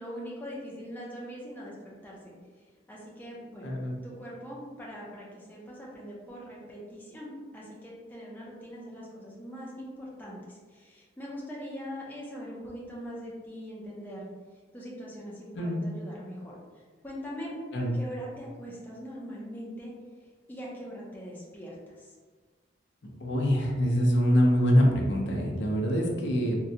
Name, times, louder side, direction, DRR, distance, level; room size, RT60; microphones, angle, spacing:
voice 1, 0.0-3.7 4.0-14.3 14.7-19.9 20.5-22.2, equal, 10° left, -5 dB, 0.5 m, -42 dB
voice 2, 3.6-3.9 15.5-15.8 17.7-17.9 23.2-26.6, equal, 75° left, -1 dB, 0.6 m, -24 dB
3.7 x 2.2 x 2.7 m, 1.4 s
head